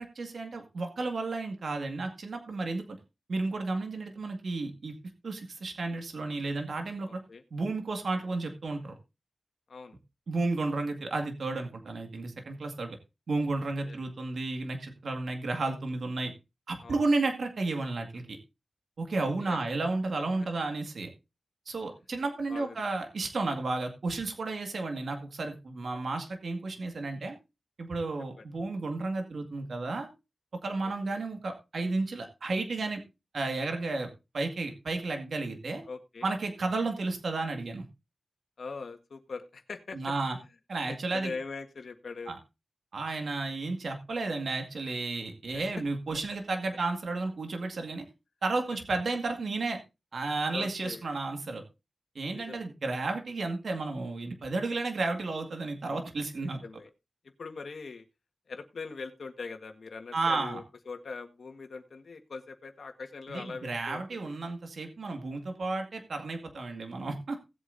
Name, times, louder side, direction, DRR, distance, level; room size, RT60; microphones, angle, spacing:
voice 1, 0.0-3.0 3.3-4.9 5.2-7.2 7.5-8.9 10.3-13.0 13.3-16.3 16.7-18.4 19.0-21.1 21.7-27.4 27.8-30.1 30.6-33.0 33.3-34.1 34.3-35.8 36.2-37.8 39.9-40.4 40.7-41.3 42.3-42.4 42.9-48.0 48.4-49.8 50.1-51.6 52.2-56.6 60.1-60.6 63.3-67.4, right 3 dB, 75° right, 4 dB, 2.0 m, -32 dB
voice 2, 7.1-7.4 9.7-10.0 13.9-14.0 16.8-17.2 19.1-19.6 22.5-22.8 28.4-28.5 30.8-31.2 35.9-36.3 38.6-40.0 40.9-42.3 45.5-45.6 48.7-48.8 50.5-51.1 52.3-52.6 56.4-56.9 57.4-58.0 58.5-64.3, left 4 dB, 75° left, 6 dB, 1.6 m, -42 dB
18.0 x 8.1 x 2.7 m, 0.26 s
cardioid pair, 60°, 0 cm